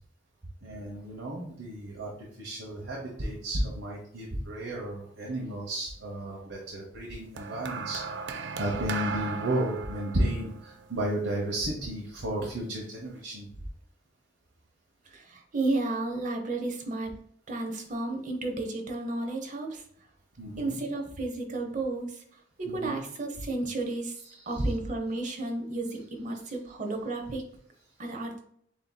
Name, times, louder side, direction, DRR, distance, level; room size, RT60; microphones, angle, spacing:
voice 1, 0.6-2.1 2.4-13.5 20.4-20.8 22.7-23.0 24.3-24.6, right 1 dB, 90° right, -2 dB, 0.9 m, -33 dB
sound 1, 7.4-11.8 12.7-13.0, right 5 dB, 65° right, 0.4 m, -37 dB
voice 2, 15.1-17.1 17.5-19.8 20.6-22.2 22.6-24.2 24.5-27.4 28.0-28.4, right 2 dB, 40° right, 3 dB, 0.8 m, -32 dB
7.2 x 2.8 x 2.2 m, 0.66 s
head